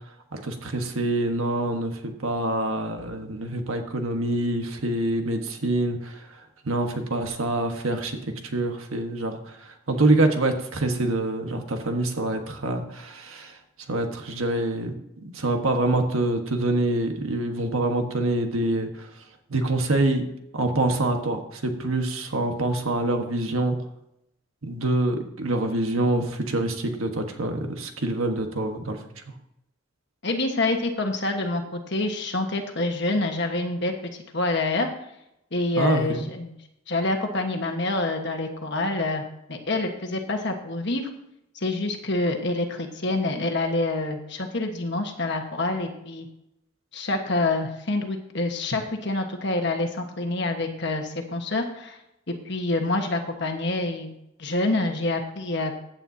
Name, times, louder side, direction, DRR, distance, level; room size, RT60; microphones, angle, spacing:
voice 1, 0.3-13.6 13.9-14.9 15.2-19.1 19.5-20.2 20.5-23.7 24.6-29.0 35.8-36.2, right 2 dB, 90° right, 5 dB, 1.5 m, -26 dB
voice 2, 30.2-33.9 34.3-34.9 35.5-36.5 36.9-39.2 39.5-41.1 41.6-46.3 46.9-52.0 52.3-54.1 54.4-55.7, left 2 dB, 55° left, 4 dB, 1.5 m, -27 dB
15.5 x 9.0 x 2.8 m, 0.82 s
head